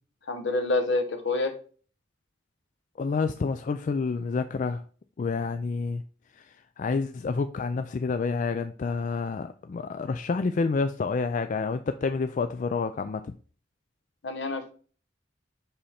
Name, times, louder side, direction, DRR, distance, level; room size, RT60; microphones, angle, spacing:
voice 1, 0.3-1.6 14.2-14.7, left 2 dB, 65° left, 1.0 m, -27 dB
voice 2, 3.0-4.8 5.2-6.0 6.4-13.3, left 4 dB, 40° left, 0.3 m, -29 dB
5.7 x 5.4 x 4.2 m
head